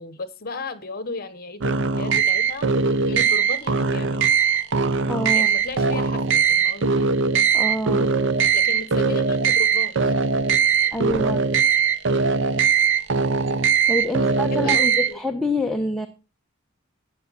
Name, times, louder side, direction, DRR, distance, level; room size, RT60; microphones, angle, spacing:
voice 1, 0.0-2.7 3.1-4.3 5.3-6.9 8.5-9.9 14.0-15.2, left 3 dB, 50° left, 16 dB, 1.2 m, -35 dB
sound 1, 1.6-15.1, right 6 dB, 60° right, 0.7 m, -20 dB
voice 2, 5.1-5.5 7.5-8.1 10.9-11.4 13.9-16.1, left 1 dB, ahead, 4 dB, 0.8 m, -26 dB
12.5 x 9.2 x 4.1 m, 0.29 s
head